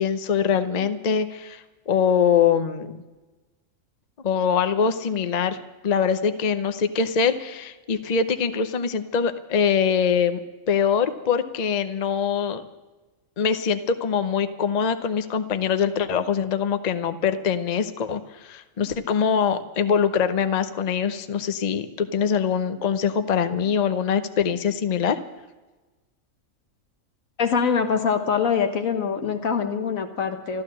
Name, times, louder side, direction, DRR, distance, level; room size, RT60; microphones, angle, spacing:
voice 1, 0.0-3.0 4.2-5.6 5.8-10.4 10.7-12.6 13.4-25.2, left 7 dB, 40° left, 9 dB, 0.7 m, -23 dB
voice 2, 27.4-30.6, left 6 dB, 85° left, 6 dB, 1.6 m, -24 dB
14.0 x 12.5 x 7.5 m, 1.2 s
omnidirectional pair, 1.4 m